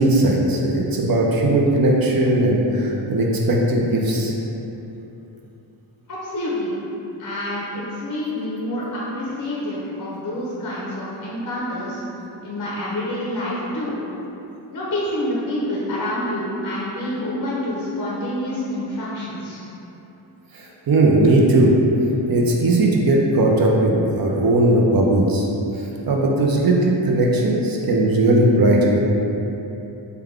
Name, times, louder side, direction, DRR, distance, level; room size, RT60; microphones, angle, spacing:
voice 1, 0.0-4.3 20.5-21.7 22.3-25.5 25.7-29.0, right 1 dB, 50° right, -2 dB, 0.5 m, -18 dB
voice 2, 6.1-6.7 7.2-12.0 12.4-13.9 14.7-19.6, left 1 dB, 45° left, -7 dB, 0.6 m, -27 dB
3.3 x 2.2 x 3.5 m, 3.0 s
wide cardioid pair, 120°, 46 cm